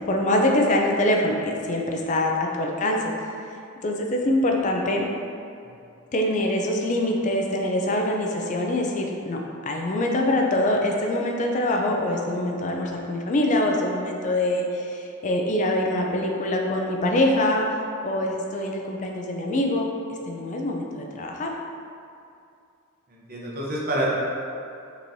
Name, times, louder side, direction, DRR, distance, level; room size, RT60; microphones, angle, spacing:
voice 1, 0.1-3.1 3.8-5.1 6.1-19.9 20.3-21.5, left 1 dB, 35° left, 1 dB, 0.4 m, -24 dB
voice 2, 23.1-24.1, right 1 dB, 45° right, -4 dB, 0.7 m, -27 dB
5.3 x 3.1 x 2.7 m, 2.5 s
head